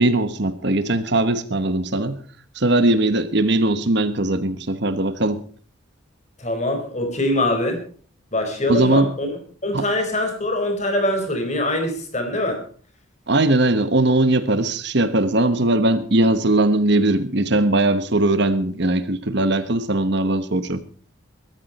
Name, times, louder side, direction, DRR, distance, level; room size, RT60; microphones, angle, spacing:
voice 1, 0.0-2.2 2.6-5.4 8.7-9.1 9.7-9.9 13.3-20.8, right 2 dB, 55° right, 12 dB, 1.2 m, -19 dB
voice 2, 6.4-7.8 8.3-9.4 9.6-12.6, left 1 dB, 35° left, 5 dB, 4.7 m, -23 dB
21.0 x 14.0 x 4.3 m, 0.42 s
head